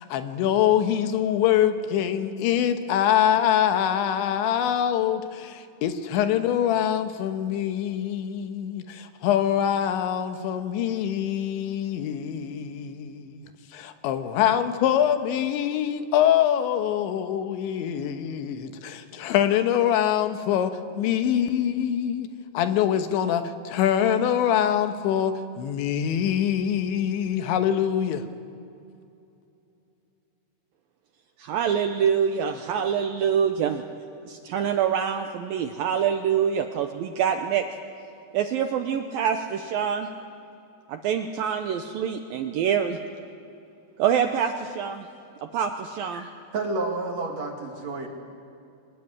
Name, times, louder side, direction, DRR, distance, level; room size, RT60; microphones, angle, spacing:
voice 1, 0.1-13.4 13.7-22.3 22.5-28.2, left 10 dB, 90° left, 8 dB, 3.5 m, -24 dB
voice 2, 31.4-33.8 34.3-37.7 38.3-40.1 40.9-43.0 44.0-45.1 45.4-46.3, right 8 dB, 80° right, 6 dB, 2.1 m, -25 dB
voice 3, 46.1-48.1, right 3 dB, 45° right, 2 dB, 2.7 m, -30 dB
24.0 x 19.5 x 9.6 m, 2.7 s
omnidirectional pair, 5.1 m